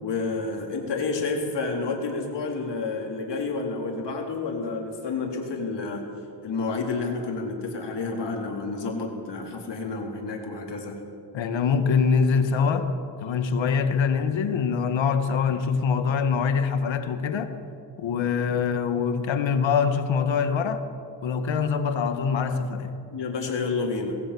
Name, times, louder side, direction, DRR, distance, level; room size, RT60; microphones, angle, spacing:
voice 1, 0.0-6.0 6.4-11.0 18.2-18.3 23.1-24.3, left 3 dB, 65° left, 4.0 m, -30 dB
voice 2, 11.3-17.5 18.0-20.8 21.2-23.0, left 6 dB, 85° left, 1.7 m, -24 dB
20.0 x 17.0 x 8.6 m
wide cardioid pair, 125°, 44 cm